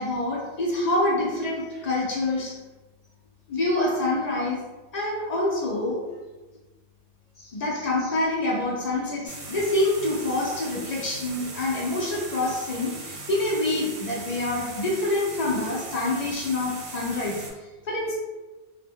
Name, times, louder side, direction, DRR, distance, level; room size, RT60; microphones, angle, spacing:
voice 1, 0.0-2.6 3.5-4.7 4.9-6.0 7.4-17.4 17.8-18.2, left 2 dB, 70° left, -3 dB, 0.4 m, -26 dB
sound 1, 9.3-17.5, right 3 dB, 85° right, 1.0 m, -39 dB
2.1 x 2.1 x 3.5 m, 1.2 s
omnidirectional pair, 1.3 m